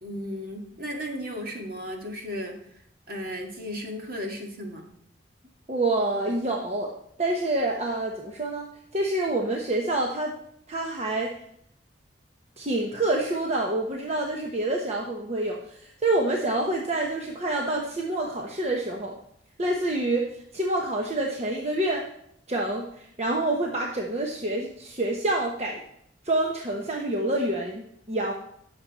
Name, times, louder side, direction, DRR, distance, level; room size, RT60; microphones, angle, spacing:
voice 1, 0.0-2.6 3.1-4.8, equal, 55° right, 1 dB, 2.2 m, -35 dB
voice 2, 5.7-6.9 7.2-10.4 10.7-11.3 12.6-19.1 19.6-22.0 22.5-25.8 26.2-28.3, right 2 dB, 35° right, 0 dB, 1.1 m, -27 dB
16.0 x 7.2 x 4.2 m, 0.73 s
head